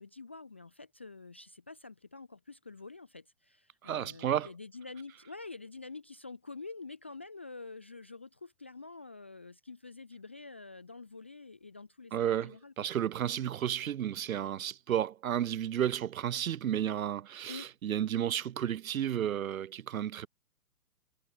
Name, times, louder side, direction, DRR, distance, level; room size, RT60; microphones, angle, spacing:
voice 1, 0.0-12.7 17.5-17.7, left 3 dB, 10° left, 0.4 m, -47 dB
voice 2, 3.8-4.5 12.1-20.3, right 10 dB, 60° right, 0.7 m, -32 dB
hypercardioid pair, 140°, 47 cm